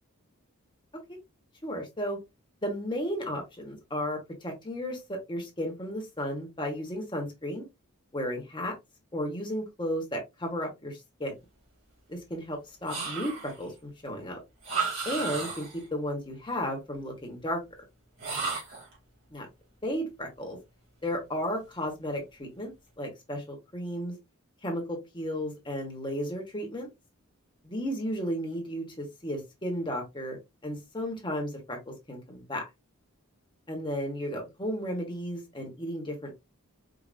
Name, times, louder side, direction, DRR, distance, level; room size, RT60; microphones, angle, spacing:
voice 1, 1.6-2.2 2.6-7.6 8.1-8.8 9.1-11.3 12.1-14.4 15.0-17.6 19.3-19.5 19.8-20.6 21.0-24.1 24.6-26.9 27.6-30.4 30.6-32.6 33.7-36.3, equal, 20° left, 1 dB, 1.3 m, -34 dB
sound 1, 12.9-13.7 14.6-15.9 18.2-18.9, right 5 dB, 60° right, 2.5 m, -33 dB
4.9 x 2.8 x 2.4 m, 0.21 s
head